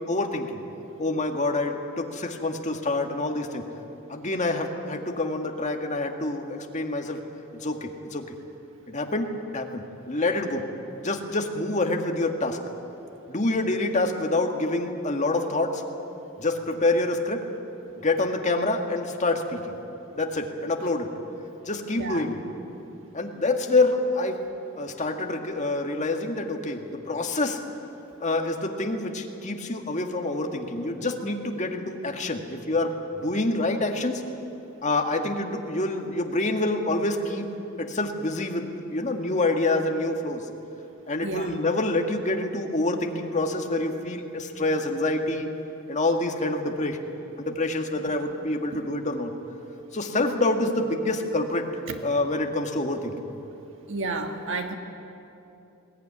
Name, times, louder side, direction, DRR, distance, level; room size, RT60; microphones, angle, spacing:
voice 1, 0.1-0.6 1.0-3.6 4.1-7.2 7.6-8.2 8.9-10.6 11.0-12.6 13.3-15.8 16.4-17.5 18.0-19.6 20.1-21.1 21.6-22.4 23.1-24.4 24.8-27.6 28.2-32.9 33.2-34.3 34.8-37.5 37.8-40.4 41.1-45.5 45.9-47.0 47.4-49.3 49.9-51.7 52.0-53.1, left 2 dB, 35° left, 3 dB, 1.8 m, -27 dB
voice 2, 22.0-22.3 41.2-41.6 48.1-48.2 48.7-48.8 51.9-52.0 53.9-54.8, right 3 dB, 65° right, 5 dB, 1.6 m, -32 dB
21.0 x 18.0 x 9.8 m, 2.9 s
head